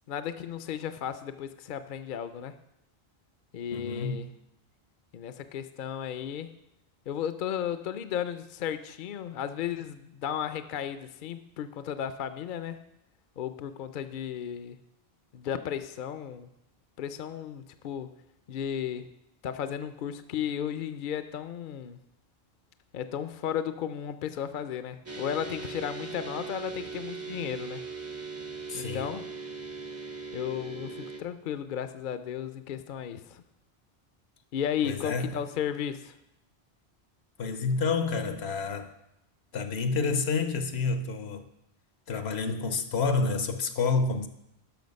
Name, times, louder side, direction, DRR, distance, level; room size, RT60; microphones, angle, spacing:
voice 1, 0.1-2.6 3.5-4.3 5.1-6.5 7.1-12.8 13.4-14.8 15.3-16.5 17.0-18.1 18.5-19.1 19.4-22.0 22.9-27.8 28.7-29.3 30.3-33.4 34.5-36.1, left 9 dB, 60° left, 0.7 m, -34 dB
voice 2, 3.7-4.3 28.7-29.0 34.8-35.3 37.4-38.9 39.5-41.4 42.1-44.3, left 4 dB, 80° left, 1.1 m, -29 dB
sound 1, 25.1-31.2, right 4 dB, 20° right, 0.6 m, -39 dB
12.0 x 6.3 x 5.3 m
omnidirectional pair, 1.1 m